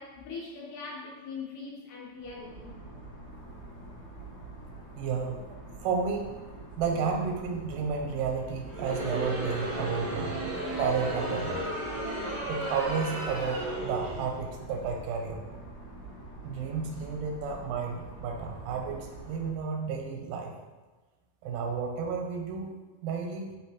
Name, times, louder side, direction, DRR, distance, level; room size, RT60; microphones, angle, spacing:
voice 1, 0.0-2.7 4.7-5.0, left 4 dB, 75° left, -2 dB, 2.0 m, -41 dB
sound 1, 2.2-19.5, right 2 dB, 50° left, 1.2 m, -46 dB
voice 2, 5.0-6.4 6.8-10.4 10.8-11.6 12.5-15.6 16.4-20.5 21.4-22.7 23.0-23.5, right 5 dB, 90° right, 2 dB, 2.3 m, -32 dB
Crowd, 8.6-14.3, right 1 dB, 65° right, 1.1 m, -34 dB
4.9 x 3.5 x 2.9 m, 1.3 s
omnidirectional pair, 3.9 m